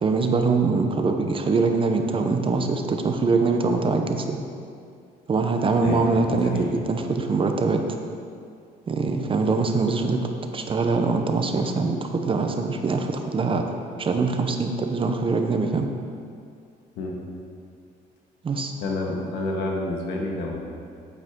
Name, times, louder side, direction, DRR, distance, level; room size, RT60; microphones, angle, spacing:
voice 1, 0.0-4.4 5.3-7.8 8.9-10.3 10.5-13.6 14.0-15.9 18.4-18.7, right 4 dB, 30° right, 5 dB, 0.7 m, -23 dB
voice 2, 5.8-6.7 9.5-9.6 17.0-17.2 18.8-20.6, left 2 dB, 85° left, 0 dB, 1.5 m, -29 dB
8.3 x 7.9 x 3.7 m, 2.3 s
cardioid pair, 110°, 17 cm